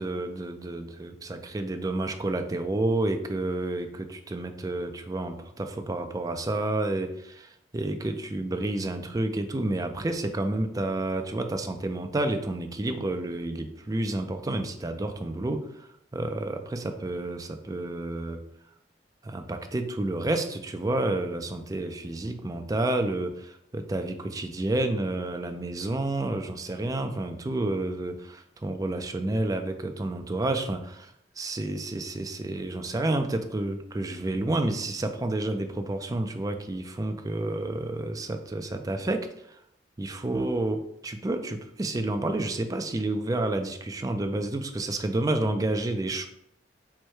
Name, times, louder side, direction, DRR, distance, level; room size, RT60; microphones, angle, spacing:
voice 1, 0.0-18.4 19.2-39.6 40.0-46.3, right 2 dB, 20° right, 6 dB, 0.4 m, -30 dB
4.6 x 2.2 x 4.5 m, 0.77 s
head